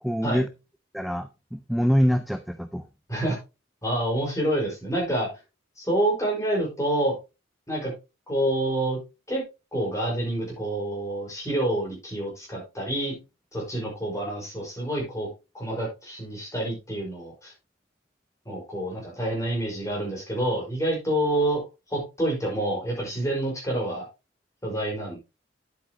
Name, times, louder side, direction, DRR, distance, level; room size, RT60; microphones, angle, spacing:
voice 1, 0.0-0.5 0.9-2.8, equal, ahead, 0.4 m, -25 dB
voice 2, 3.8-5.3 5.8-7.1 7.7-7.9 8.3-9.0 9.3-9.4 9.7-13.1 13.5-15.3 15.5-17.5 18.4-21.6 21.9-24.1 24.6-25.2, right 1 dB, 15° left, 5.0 m, -27 dB
9.7 x 8.0 x 3.0 m
head